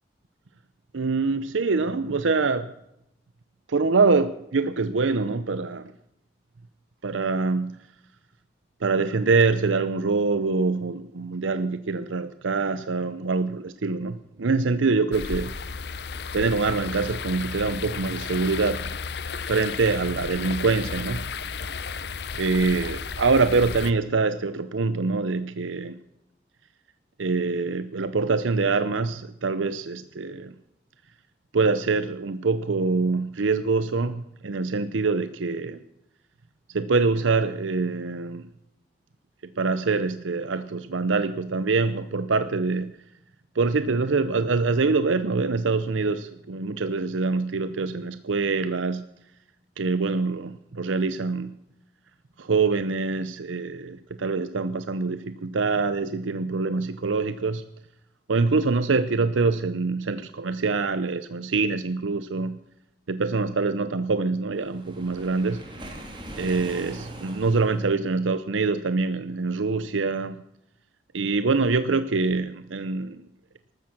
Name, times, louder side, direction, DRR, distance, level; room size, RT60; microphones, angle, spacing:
voice 1, 0.9-2.7 3.7-5.9 7.0-7.9 8.8-15.8 16.3-18.9 19.4-21.2 22.4-26.0 27.2-30.5 31.5-35.8 36.7-38.5 39.6-42.9 43.5-49.1 49.8-51.5 52.4-57.6 58.3-62.6 63.1-65.7 66.4-70.4 71.1-73.2, right 4 dB, 90° right, 12 dB, 0.7 m, -25 dB
sound 1, 15.1-23.9, left 5 dB, 60° left, 0.7 m, -33 dB
Waves surf, 64.6-67.9, right 1 dB, 25° right, 2.8 m, -41 dB
14.0 x 13.5 x 6.0 m, 0.80 s
head